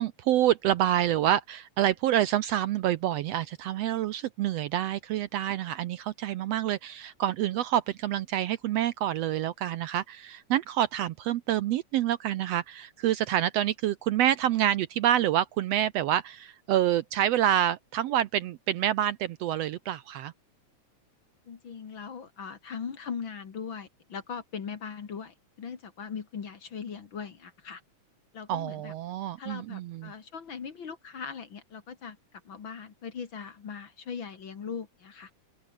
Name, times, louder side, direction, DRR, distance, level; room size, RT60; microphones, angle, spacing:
voice 1, 0.0-20.3 28.5-30.1, right 12 dB, 75° right, 1.6 m, -27 dB
voice 2, 21.5-27.8 28.3-28.9 29.4-32.2 32.4-35.3, left 6 dB, 45° left, 2.3 m, -40 dB
open air
omnidirectional pair, 3.4 m